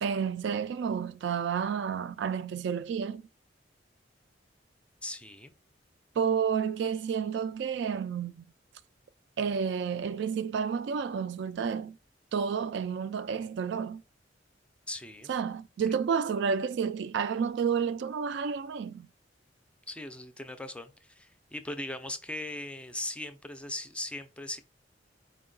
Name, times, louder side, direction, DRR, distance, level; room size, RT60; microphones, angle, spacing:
voice 1, 0.0-3.3 6.2-8.4 9.4-12.0 12.3-14.0 15.3-19.1, right 6 dB, 70° right, 0.3 m, -30 dB
voice 2, 5.0-5.5 14.9-15.3 19.9-24.6, left 1 dB, 5° left, 0.4 m, -39 dB
4.5 x 2.2 x 3.7 m
head